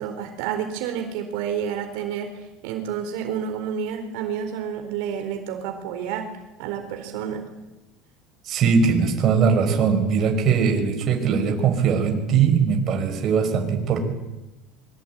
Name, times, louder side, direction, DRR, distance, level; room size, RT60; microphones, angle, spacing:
voice 1, 0.0-6.3 6.6-7.4, right 8 dB, 70° right, 5 dB, 4.3 m, -29 dB
voice 2, 8.5-14.0, right 6 dB, 40° right, 4 dB, 5.3 m, -20 dB
24.5 x 23.5 x 9.4 m, 1.0 s
cardioid pair, 150°, 0 cm